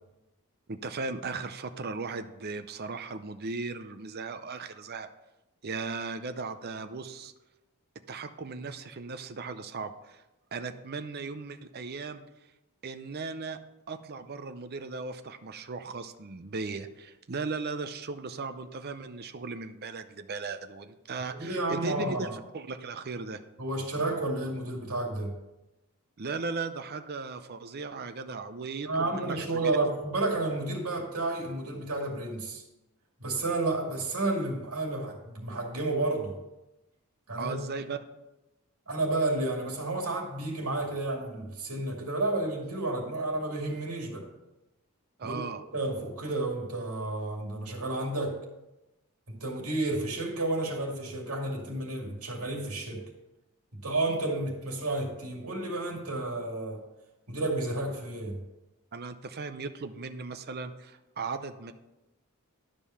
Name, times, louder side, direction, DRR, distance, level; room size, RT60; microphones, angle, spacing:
voice 1, 0.7-5.1 5.6-7.3 8.1-10.2 10.5-12.2 12.8-13.6 13.9-23.4 26.2-29.5 37.4-38.0 45.2-45.6 58.9-61.7, right 4 dB, 45° right, 9 dB, 0.6 m, -37 dB
voice 2, 21.3-22.4 23.6-25.3 28.9-32.6 33.2-36.3 37.3-37.6 38.9-44.3 45.2-45.4 45.7-48.4 49.3-53.0 53.7-56.8 57.3-58.4, right 2 dB, 75° right, 1 dB, 2.3 m, -31 dB
11.5 x 5.3 x 5.6 m, 0.98 s
head